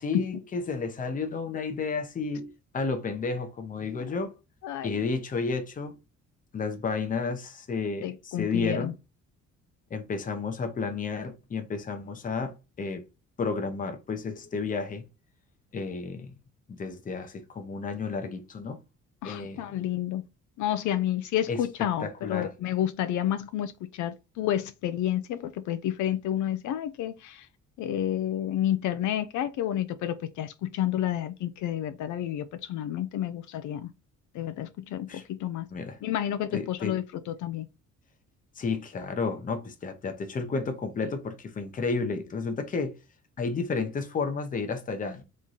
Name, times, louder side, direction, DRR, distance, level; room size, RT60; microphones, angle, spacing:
voice 1, 0.0-4.3 4.8-6.0 6.5-8.9 9.9-13.0 13.4-15.0 15.7-16.3 16.7-18.8 19.2-19.8 21.5-22.5 35.1-35.2 35.7-36.0 36.5-37.0 38.6-43.0 43.4-45.2, left 4 dB, 25° left, 0.7 m, -32 dB
voice 2, 4.6-5.0 8.0-8.9 19.2-20.2 20.6-27.5 27.8-33.9 34.3-35.7 36.0-37.7, left 11 dB, 75° left, 0.5 m, -30 dB
3.6 x 3.2 x 4.0 m
cardioid pair, 160°, 30 cm